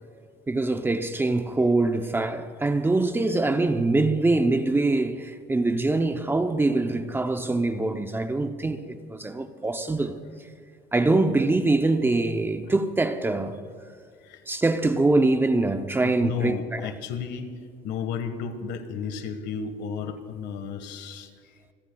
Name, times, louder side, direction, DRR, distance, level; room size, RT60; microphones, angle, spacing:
voice 1, 0.5-10.2 10.9-13.6 14.5-16.9, right 2 dB, 10° right, 0.6 m, -24 dB
voice 2, 16.0-17.5 17.8-21.3, left 6 dB, 80° left, 1.5 m, -33 dB
27.0 x 17.0 x 2.3 m
cardioid pair, 150°, 18 cm